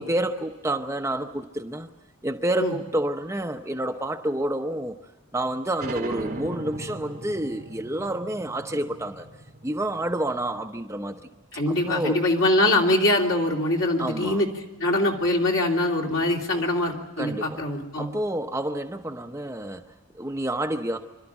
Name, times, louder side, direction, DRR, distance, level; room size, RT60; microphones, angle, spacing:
voice 1, 0.0-1.9 2.2-5.0 5.3-9.3 9.6-11.2 11.7-12.2 14.0-14.4 17.2-17.6 17.9-21.0, right 1 dB, 10° right, 4 dB, 0.7 m, -29 dB
sound 1, 5.8-11.0, right 2 dB, 45° right, 2.3 m, -39 dB
voice 2, 11.5-14.5 14.8-18.1, left 1 dB, 60° left, 0 dB, 3.2 m, -23 dB
26.5 x 12.5 x 10.0 m, 1.2 s
head